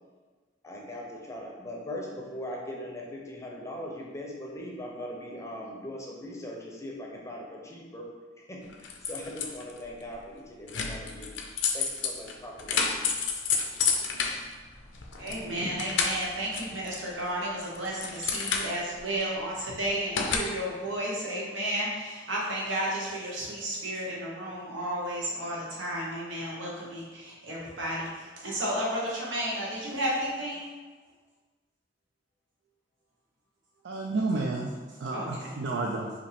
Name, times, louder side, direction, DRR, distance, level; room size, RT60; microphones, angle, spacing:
voice 1, 0.6-8.1 8.4-11.3 11.7-13.1, left 1 dB, 15° left, -1 dB, 0.6 m, -40 dB
sound 1, 8.7-9.8 10.7-15.4 15.7-17.2 17.6-19.0 20.2-20.4, left 5 dB, 70° left, 0.5 m, -30 dB
voice 2, 15.2-30.6 35.1-35.5, right 1 dB, 85° right, -4 dB, 1.3 m, -32 dB
voice 3, 33.8-34.7 35.0-36.1, right 3 dB, 70° right, 0 dB, 0.4 m, -30 dB
5.0 x 2.7 x 3.4 m, 1.4 s
head